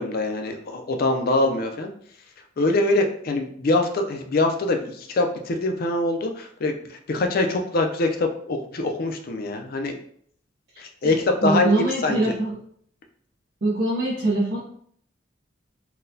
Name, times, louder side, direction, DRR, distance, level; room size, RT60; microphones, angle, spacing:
voice 1, 0.0-1.9 2.6-10.0 10.8-11.7 12.0-12.2, left 2 dB, 50° left, 4 dB, 0.4 m, -24 dB
voice 2, 10.7-12.6 13.6-14.6, right 2 dB, 60° right, -7 dB, 0.8 m, -24 dB
3.9 x 2.2 x 2.6 m, 0.63 s
head